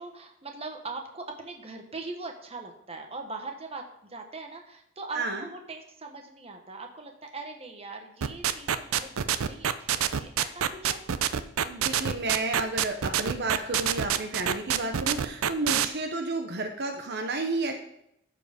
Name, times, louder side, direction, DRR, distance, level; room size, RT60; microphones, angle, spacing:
voice 1, 0.0-11.0 16.4-16.5, right 3 dB, 30° right, 3 dB, 1.2 m, -41 dB
voice 2, 5.1-5.5 11.6-17.8, right 2 dB, 55° right, 3 dB, 0.9 m, -31 dB
sound 1, 8.2-15.9, right 9 dB, 85° right, 0.5 m, -26 dB
13.0 x 4.8 x 5.0 m, 0.77 s
head